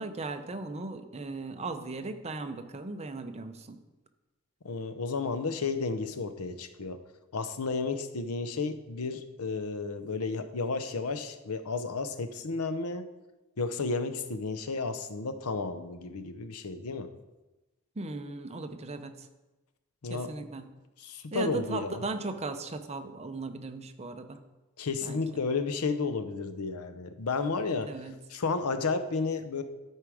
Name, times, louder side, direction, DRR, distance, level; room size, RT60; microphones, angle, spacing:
voice 1, 0.0-3.8 18.0-19.3 20.1-20.7 21.3-24.4 25.0-25.2 27.8-28.2, right 3 dB, 30° right, 7 dB, 0.7 m, -37 dB
voice 2, 4.6-7.0 7.3-13.1 13.6-17.1 20.0-20.3 21.0-22.0 24.8-27.9 28.3-29.6, left 4 dB, 85° left, 10 dB, 0.7 m, -32 dB
12.5 x 4.7 x 4.9 m, 1.1 s
head